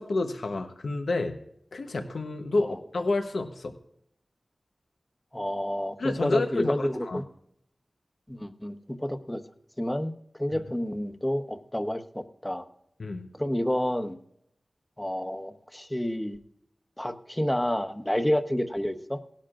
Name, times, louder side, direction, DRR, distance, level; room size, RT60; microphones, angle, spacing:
voice 1, 0.0-1.4 1.7-3.7 6.0-7.2 10.5-10.6 13.0-13.3, left 2 dB, 90° left, 5 dB, 1.0 m, -29 dB
voice 2, 5.3-7.2 8.3-9.4 9.8-10.1 10.4-12.7 13.3-14.2 15.0-16.4 17.0-19.2, left 1 dB, 10° left, 8 dB, 1.0 m, -29 dB
18.0 x 11.5 x 2.5 m, 0.71 s
wide cardioid pair, 65°, 0 cm